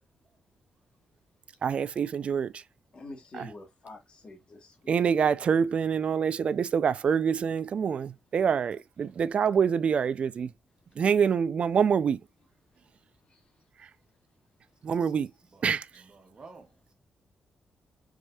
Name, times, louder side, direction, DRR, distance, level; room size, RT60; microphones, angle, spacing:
voice 1, 1.6-2.5 3.3-3.5 4.9-10.5 11.0-12.2 14.8-15.3 15.6-15.8, right 7 dB, 50° right, 0.4 m, -26 dB
voice 2, 2.9-5.0, left 2 dB, 40° left, 1.4 m, -46 dB
voice 3, 15.5-16.9, right 4 dB, 35° right, 1.4 m, -53 dB
4.8 x 2.7 x 2.3 m
cardioid pair, 110°, 3 cm